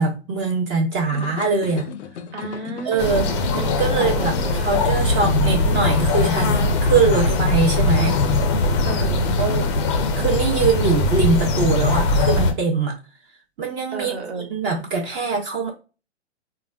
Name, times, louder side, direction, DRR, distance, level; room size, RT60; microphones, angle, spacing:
voice 1, 0.0-1.8 2.8-3.3 3.5-8.2 9.4-9.7 10.2-13.0 13.6-14.2 14.5-15.7, right 4 dB, 20° right, 1 dB, 0.6 m, -22 dB
sound 1, 1.1-10.3, left 8 dB, 80° left, 0.5 m, -34 dB
voice 2, 2.3-3.5 3.8-4.7 8.8-9.2 13.9-14.6, right 4 dB, 70° right, 3 dB, 1.3 m, -33 dB
sound 2, 3.0-12.5, left 2 dB, 25° left, 0.4 m, -20 dB
3.9 x 2.2 x 2.3 m, 0.33 s
figure-of-eight pair, 120°, 35 cm